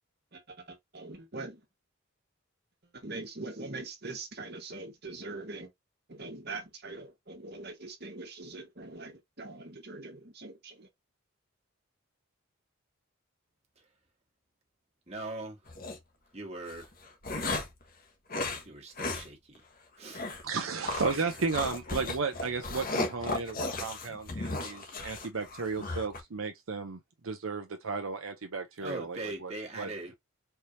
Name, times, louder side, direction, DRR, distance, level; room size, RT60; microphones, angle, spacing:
voice 1, 0.3-1.6 2.8-5.7 6.1-10.9, right 3 dB, 50° right, 1.4 m, -42 dB
voice 2, 15.1-15.6 16.3-16.9 18.5-19.6 20.0-20.3 28.8-30.1, right 2 dB, 30° right, 1.6 m, -41 dB
sound 1, 15.7-16.0 16.7-17.8 18.3-18.6 19.0-19.3 19.6-19.7 20.1-20.4 20.9-26.2, left 2 dB, 40° left, 1.2 m, -35 dB
voice 3, 20.4-27.0 27.2-29.5 29.8-29.9, right 4 dB, 70° right, 0.7 m, -34 dB
4.5 x 3.3 x 2.7 m
head